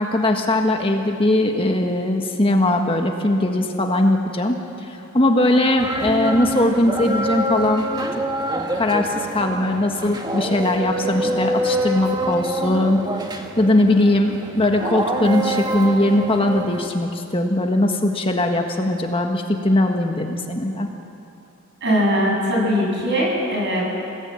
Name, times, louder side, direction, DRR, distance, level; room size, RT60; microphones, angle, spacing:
voice 1, 0.0-7.9 8.7-13.0 13.6-20.9, left 1 dB, 25° left, 3 dB, 1.5 m, -20 dB
sound 1, 5.8-16.9, right 1 dB, 20° right, 1.6 m, -26 dB
voice 2, 21.8-23.8, equal, 55° right, -1 dB, 7.3 m, -20 dB
28.5 x 18.0 x 8.9 m, 2.8 s
head